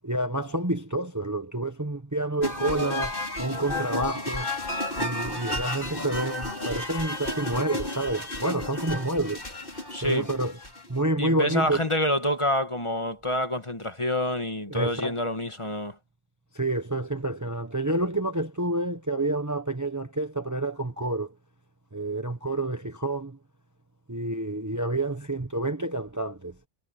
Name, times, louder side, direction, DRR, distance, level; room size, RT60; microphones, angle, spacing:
voice 1, 0.0-4.5 5.0-9.4 10.0-10.5 10.9-11.8 14.7-15.2 16.5-21.3 21.9-23.4 24.1-26.5, right 2 dB, 15° right, 1.1 m, -28 dB
sound 1, 2.4-11.0, left 1 dB, 45° left, 5.5 m, -32 dB
voice 2, 9.9-10.3 11.2-16.0, left 1 dB, 25° left, 1.7 m, -27 dB
omnidirectional pair, 1.2 m